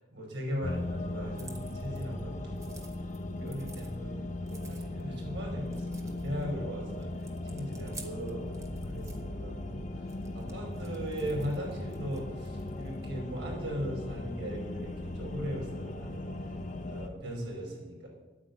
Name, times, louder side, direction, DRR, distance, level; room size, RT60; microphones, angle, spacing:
voice 1, 0.1-2.8 3.3-4.2 4.5-7.1 7.4-10.1 10.3-16.3 16.8-18.1, equal, 75° right, -1 dB, 5.4 m, -38 dB
sound 1, 0.6-17.1, left 1 dB, 45° left, 1.1 m, -38 dB
sound 2, 1.3-2.2 2.5-3.9 4.4-5.1 5.6-6.5 6.9-9.2 10.1-13.0, right 3 dB, 15° right, 1.7 m, -52 dB
11.0 x 9.5 x 8.3 m, 1.2 s
head